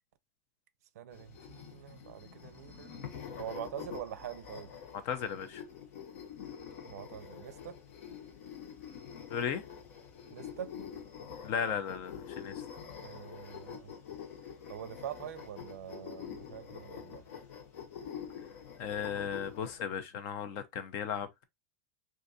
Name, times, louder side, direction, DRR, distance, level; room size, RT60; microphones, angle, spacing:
voice 1, 1.0-3.0 3.4-4.7 6.8-7.8 10.3-10.7 13.0-13.9 14.7-17.2, right 10 dB, 75° right, 0.5 m, -44 dB
sound 1, 1.1-19.8, left 7 dB, 55° left, 1.0 m, -46 dB
voice 2, 5.0-5.6 9.3-9.6 11.4-12.5 18.8-21.4, left 7 dB, 35° left, 0.5 m, -35 dB
3.7 x 2.6 x 2.6 m
supercardioid pair, 180°, 8 cm